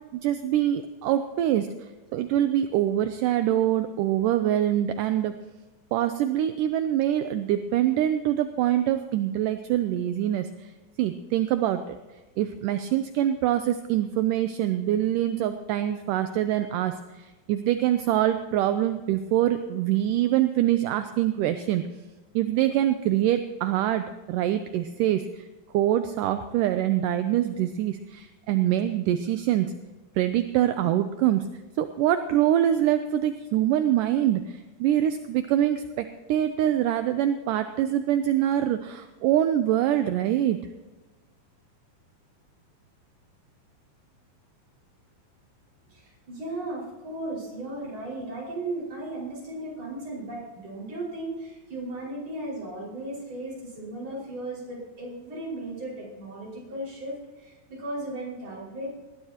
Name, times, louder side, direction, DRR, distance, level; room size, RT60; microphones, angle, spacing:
voice 1, 0.2-1.7 2.1-5.3 5.9-10.5 11.0-12.0 12.4-17.0 17.5-21.8 22.4-25.3 25.7-29.7 30.2-31.5 31.8-40.6, right 12 dB, 80° right, 9 dB, 2.0 m, -24 dB
voice 2, 45.9-58.9, right 1 dB, 45° right, -4 dB, 6.5 m, -36 dB
20.0 x 16.0 x 2.9 m, 1.2 s
omnidirectional pair, 4.2 m